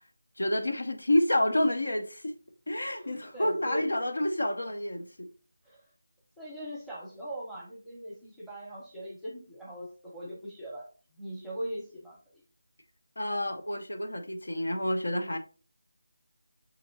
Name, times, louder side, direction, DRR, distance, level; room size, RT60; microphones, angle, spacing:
voice 1, 0.4-2.3 2.7-5.3 13.2-15.4, left 1 dB, 80° left, 0.7 m, -29 dB
voice 2, 3.0-3.9 5.7-5.8 6.4-10.9 11.2-12.2, equal, ahead, 0.8 m, -40 dB
6.6 x 2.9 x 2.6 m
figure-of-eight pair, 165°, 0 cm